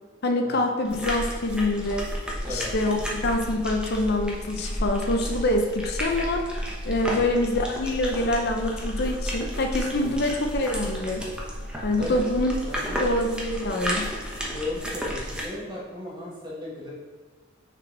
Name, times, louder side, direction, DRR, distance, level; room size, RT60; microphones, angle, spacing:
voice 1, 0.2-2.1 2.5-6.5 6.9-11.2 11.8-12.6 13.0-14.1, left 1 dB, 55° left, 4 dB, 0.6 m, -25 dB
sound 1, 0.8-15.4, equal, 5° right, 1.0 m, -32 dB
voice 2, 12.6-13.0 14.4-16.9, left 2 dB, 25° right, -5 dB, 1.8 m, -36 dB
6.1 x 4.6 x 4.2 m, 1.3 s
head